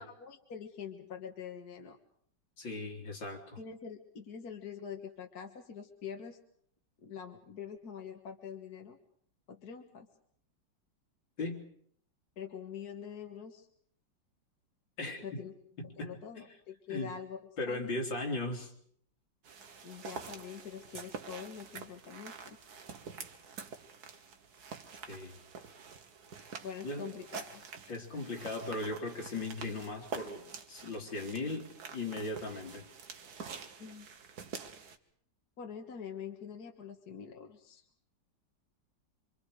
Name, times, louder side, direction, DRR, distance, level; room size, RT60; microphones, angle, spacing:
voice 1, 0.0-2.0 3.6-6.4 7.0-9.0 9.5-10.1 12.4-13.7 15.2-15.5 16.0-17.4 17.7-17.9 19.8-22.6 26.6-27.6 33.8-34.1 35.6-37.8, left 7 dB, 55° left, 3 dB, 2.0 m, -45 dB
voice 2, 2.6-3.6 11.4-11.6 15.0-15.5 15.8-16.4 16.9-17.1 17.6-18.7 25.0-25.4 26.8-27.2 27.9-32.9, left 2 dB, 85° left, 1 dB, 4.0 m, -38 dB
sound 1, 19.4-35.0, right 5 dB, 60° right, 1.9 m, -47 dB
26.5 x 25.5 x 4.9 m, 0.62 s
omnidirectional pair, 2.0 m